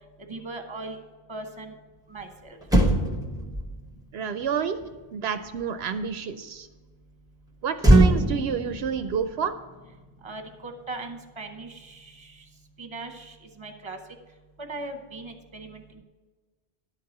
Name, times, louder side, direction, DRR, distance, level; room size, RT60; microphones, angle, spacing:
voice 1, 0.3-1.0 1.3-1.7 2.1-2.6 10.2-12.4 12.8-14.0 14.6-16.0, right 2 dB, 30° right, 5 dB, 1.1 m, -39 dB
Motor vehicle (road), 2.2-2.3 2.6-6.2 7.8-10.4 10.7-10.9, right 1 dB, 5° right, 0.9 m, -24 dB
voice 2, 4.1-4.8 5.1-6.7 7.6-9.5, right 7 dB, 80° right, 9 dB, 0.8 m, -29 dB
11.0 x 4.7 x 7.2 m, 1.3 s
omnidirectional pair, 1.0 m